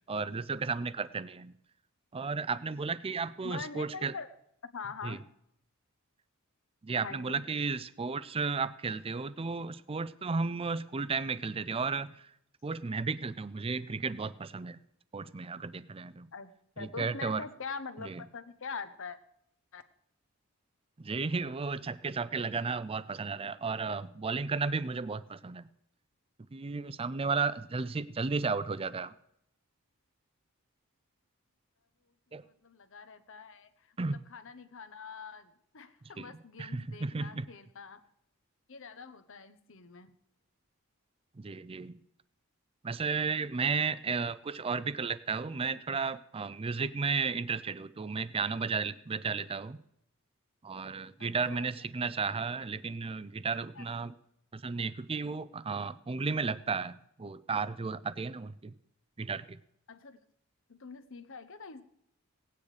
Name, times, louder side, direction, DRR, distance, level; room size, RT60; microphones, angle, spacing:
voice 1, 0.1-1.5 2.1-4.1 5.0-5.2 6.8-12.3 12.6-14.8 15.1-16.3 16.8-17.4 18.0-18.2 21.0-25.7 26.5-29.1 32.3-32.4 34.0-34.2 36.2-37.5 41.4-41.9 42.8-49.8 50.6-54.1 54.5-58.7 59.2-59.6, right 4 dB, 25° right, 16 dB, 0.5 m, -34 dB
voice 2, 3.4-4.3 4.7-5.2 7.0-7.4 16.3-19.2 19.7-19.8 32.3-38.0 38.7-40.1 51.2-51.7 53.7-53.9 59.9-60.2 60.7-61.8, left 5 dB, 65° left, 11 dB, 1.0 m, -44 dB
17.5 x 9.6 x 5.0 m, 0.75 s
head